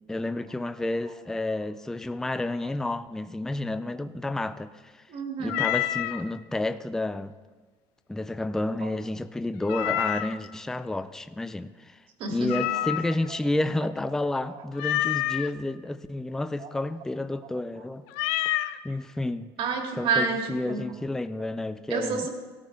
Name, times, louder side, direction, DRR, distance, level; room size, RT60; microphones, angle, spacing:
voice 1, 0.1-5.0 5.4-7.3 8.1-12.0 12.3-18.1 18.8-19.5 20.0-22.3, left 2 dB, 5° left, 11 dB, 0.4 m, -30 dB
voice 2, 5.1-5.7 8.8-8.9 9.9-10.0 12.2-12.9 16.6-16.7 19.6-20.9 21.9-22.3, right 4 dB, 55° right, 3 dB, 2.3 m, -29 dB
Meow, 5.5-6.2 9.7-10.5 12.5-13.3 14.8-15.5 18.1-18.8, left 14 dB, 90° left, 0.6 m, -28 dB
18.0 x 13.5 x 3.4 m, 1.4 s
cardioid pair, 125°, 11 cm